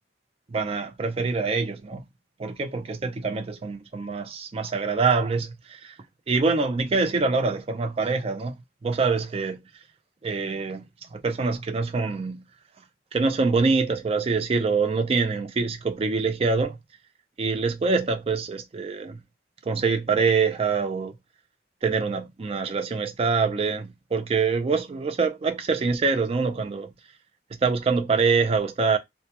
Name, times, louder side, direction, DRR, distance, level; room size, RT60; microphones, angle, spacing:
voice 1, 0.5-2.0 2.4-5.9 6.3-8.6 8.8-9.6 10.2-12.4 13.1-16.8 17.4-19.2 19.7-21.1 21.8-26.9 27.6-29.0, right 4 dB, 35° right, 0.4 m, -25 dB
2.2 x 2.1 x 2.8 m
head